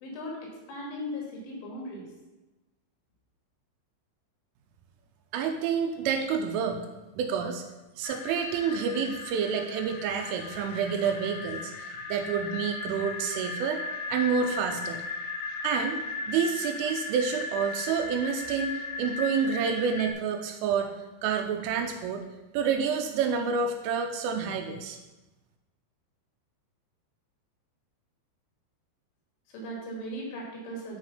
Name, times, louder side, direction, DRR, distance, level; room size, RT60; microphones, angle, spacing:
voice 1, 0.0-2.1 29.5-31.0, equal, 70° left, -2 dB, 4.4 m, -38 dB
voice 2, 5.3-6.8 7.2-7.6 8.0-15.0 15.6-20.9 21.2-22.2 22.5-25.0, right 6 dB, 85° right, 5 dB, 3.0 m, -29 dB
sound 1, 8.0-20.1, left 4 dB, 90° left, 3.5 m, -37 dB
9.7 x 4.7 x 5.4 m, 1.1 s
omnidirectional pair, 6.0 m